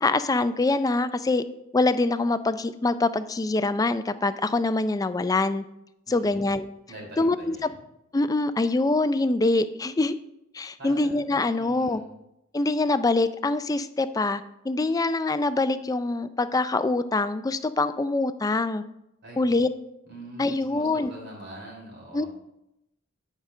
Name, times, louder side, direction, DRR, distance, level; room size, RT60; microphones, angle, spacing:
voice 1, 0.0-1.4 1.7-5.6 6.1-6.7 7.2-7.6 8.1-10.1 10.5-12.0 12.5-18.8 19.4-19.7 20.4-21.1 22.1-22.2, left 2 dB, 20° left, 12 dB, 0.4 m, -24 dB
voice 2, 6.1-6.5 6.9-7.8 10.8-11.2 11.6-12.1 19.2-19.5 20.1-22.3, right 1 dB, 55° right, -2 dB, 3.3 m, -43 dB
9.4 x 5.1 x 5.3 m, 0.84 s
head